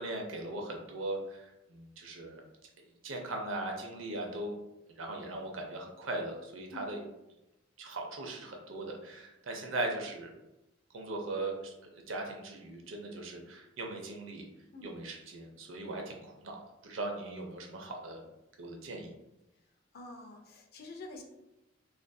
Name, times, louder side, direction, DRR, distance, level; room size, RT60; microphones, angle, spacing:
voice 1, 0.0-2.4 3.0-4.6 5.0-7.0 7.8-10.3 10.9-11.7 12.1-14.4 14.8-18.2 18.6-19.1, right 2 dB, 80° right, 2 dB, 0.5 m, -39 dB
voice 2, 19.9-21.2, left 2 dB, 50° left, 2 dB, 0.4 m, -47 dB
2.5 x 2.5 x 2.2 m, 0.93 s
head